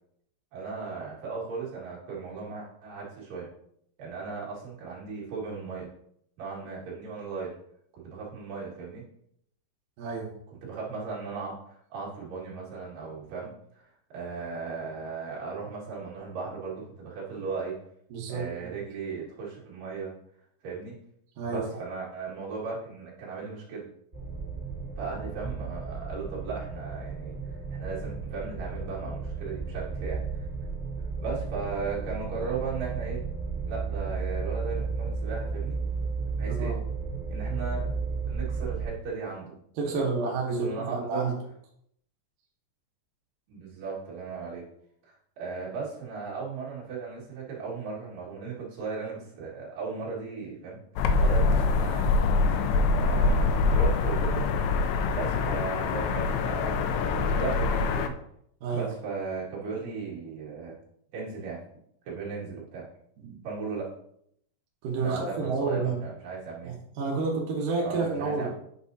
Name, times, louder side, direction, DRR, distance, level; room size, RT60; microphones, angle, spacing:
voice 1, 0.5-3.5 4.0-5.9 6.4-7.5 7.9-9.0 10.5-13.8 14.1-17.8 18.3-20.1 20.6-20.9 21.5-23.8 25.0-27.3 27.7-30.5 31.2-33.2 33.6-35.8 36.4-36.8 37.3-37.9 38.3-39.5 39.9-40.1 40.6-41.2 43.5-44.6 45.0-50.8 51.2-52.3 53.0-54.4 55.1-58.1 58.7-60.8 61.1-61.6 62.0-62.8 63.4-63.9 65.0-66.8 67.8-68.5, right 5 dB, 55° right, -6 dB, 3.1 m, -36 dB
voice 2, 10.0-10.3 18.1-18.7 21.4-21.8 36.5-36.8 39.8-41.3 58.6-58.9 63.2-63.4 64.8-66.0 66.6-68.5, right 4 dB, 75° right, -1 dB, 2.0 m, -30 dB
sound 1, 24.1-38.9, right 4 dB, 20° right, 1.5 m, -33 dB
sound 2, 51.0-58.1, left 3 dB, 85° left, 2.4 m, -24 dB
8.5 x 6.1 x 2.7 m, 0.72 s
omnidirectional pair, 5.5 m